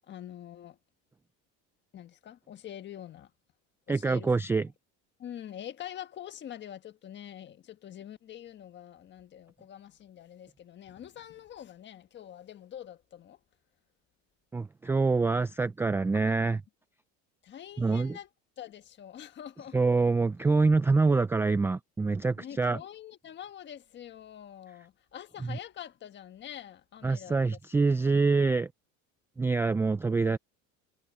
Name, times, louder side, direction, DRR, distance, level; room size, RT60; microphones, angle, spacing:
voice 1, 0.1-0.8 1.9-3.3 3.9-4.4 5.2-13.4 16.2-16.4 17.4-18.3 18.6-19.8 22.4-27.4 27.7-27.8 30.3-30.4, left 10 dB, 35° left, 1.4 m, -45 dB
voice 2, 3.9-4.7 14.5-16.6 17.8-18.2 19.7-22.8 25.5-25.6 27.0-28.7 29.4-30.4, right 4 dB, 10° right, 0.3 m, -25 dB
cardioid pair, 140°, 32 cm